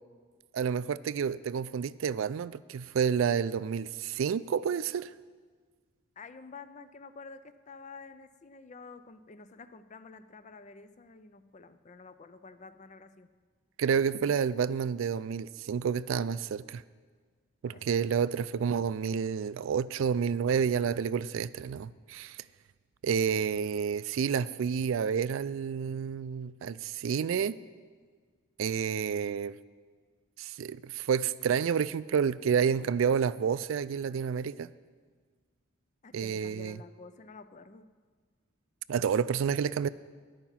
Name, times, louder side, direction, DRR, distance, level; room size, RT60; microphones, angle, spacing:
voice 1, 0.5-5.1 13.8-16.8 17.6-22.4 23.0-27.6 28.6-29.6 30.4-34.7 36.1-36.8 38.9-39.9, right 7 dB, 65° right, 16 dB, 0.3 m, -29 dB
voice 2, 6.2-13.3 17.7-17.9 36.0-37.9, left 4 dB, 35° left, 12 dB, 0.4 m, -49 dB
10.0 x 9.1 x 5.7 m, 1.5 s
head